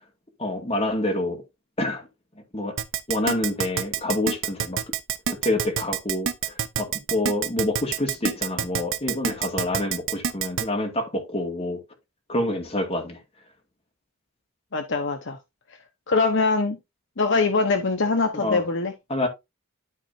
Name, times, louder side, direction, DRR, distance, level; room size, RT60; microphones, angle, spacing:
voice 1, 0.4-1.4 1.8-2.1 2.5-2.8 3.1-4.8 5.3-11.8 12.3-13.2 18.3-18.6 19.1-19.3, left 1 dB, 25° left, 2.2 m, -27 dB
Keyboard (musical), 2.8-10.6, right 8 dB, 65° right, 0.8 m, -26 dB
voice 2, 14.7-15.4 16.1-16.8 17.2-18.9, left 3 dB, 55° left, 0.9 m, -23 dB
12.5 x 4.3 x 2.7 m
head